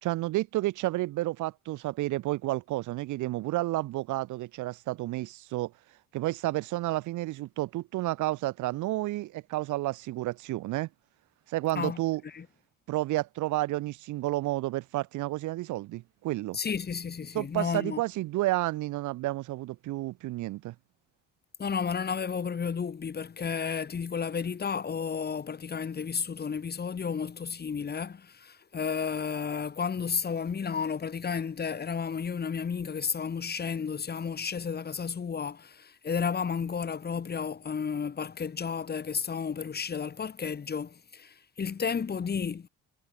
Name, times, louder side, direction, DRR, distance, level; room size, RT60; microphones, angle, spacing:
voice 1, 0.0-5.7 6.1-10.9 11.5-12.2 12.9-16.6 17.3-20.7, right 17 dB, 80° right, 0.6 m, -31 dB
voice 2, 16.5-18.0 21.6-42.7, left 6 dB, 35° left, 1.1 m, -32 dB
cardioid pair, 90°, 30 cm